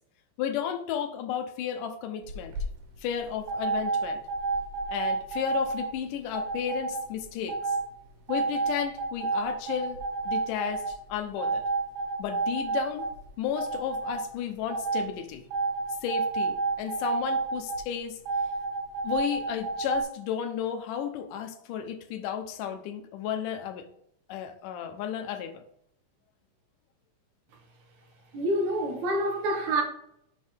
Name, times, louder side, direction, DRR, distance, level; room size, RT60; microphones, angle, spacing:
voice 1, 0.4-2.5 3.0-4.2 4.9-7.8 8.3-10.0 10.3-11.6 12.2-13.1 13.4-15.5 16.0-18.2 19.0-23.9 24.3-25.6, left 9 dB, 75° left, 2.2 m, -33 dB
sound 1, 2.2-2.6 3.5-5.9 6.3-7.0 7.5-7.8 8.3-10.9 11.4-13.3 13.6-14.2 14.7-15.0 15.5-17.8 18.3-20.0, right 4 dB, 85° right, 3.3 m, -29 dB
voice 2, 28.3-29.8, right 1 dB, 60° right, 2.7 m, -27 dB
6.7 x 5.3 x 4.5 m
omnidirectional pair, 4.2 m